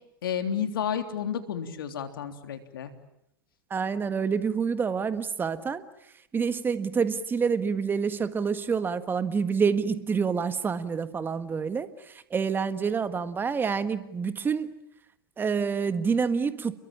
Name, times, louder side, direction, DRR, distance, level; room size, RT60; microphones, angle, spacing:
voice 1, 0.2-2.9, left 8 dB, 75° left, 3.5 m, -31 dB
voice 2, 3.7-5.8 6.3-14.7 15.4-16.8, right 6 dB, 15° right, 1.6 m, -27 dB
29.5 x 22.5 x 8.8 m
hypercardioid pair, 110°, 12 cm